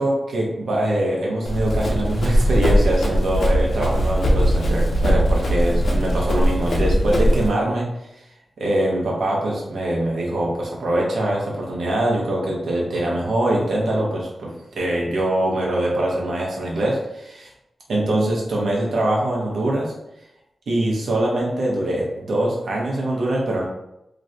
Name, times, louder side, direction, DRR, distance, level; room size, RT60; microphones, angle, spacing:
voice 1, 0.0-7.9 8.6-17.5 17.9-19.9 20.7-23.6, right 1 dB, 85° right, -3 dB, 0.7 m, -23 dB
Run, 1.5-7.5, equal, 70° left, 0.5 m, -20 dB
2.4 x 2.1 x 2.6 m, 0.87 s
wide cardioid pair, 80°, 0 cm